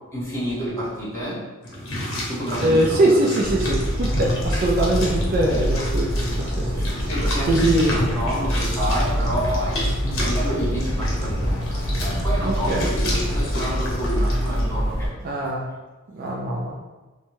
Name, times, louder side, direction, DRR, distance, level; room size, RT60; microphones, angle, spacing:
voice 1, 0.1-1.4 2.3-3.3 6.2-15.4, equal, 15° left, -10 dB, 1.2 m, -29 dB
sound 1, 1.6-14.6, left 1 dB, 65° left, 0.7 m, -30 dB
voice 2, 2.6-6.1 6.4-6.7 7.5-7.9 12.4-12.9 15.2-15.7 16.1-16.8, right 1 dB, 45° right, -2 dB, 0.3 m, -22 dB
sound 2, 3.4-15.1, equal, 30° left, 0.8 m, -25 dB
2.6 x 2.2 x 3.0 m, 1.2 s
head